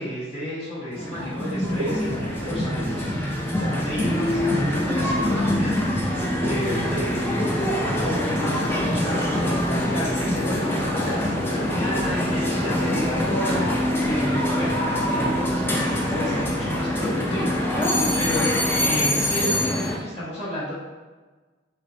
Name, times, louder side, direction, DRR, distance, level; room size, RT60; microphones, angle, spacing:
voice 1, 0.0-5.8 6.4-9.3 9.9-20.7, left 1 dB, 35° left, -11 dB, 1.0 m, -31 dB
sound 1, 0.9-20.0, left 1 dB, 10° left, 0.5 m, -24 dB
sound 2, 1.6-19.6, right 2 dB, 75° right, 0.5 m, -38 dB
3.3 x 2.9 x 3.9 m, 1.3 s
head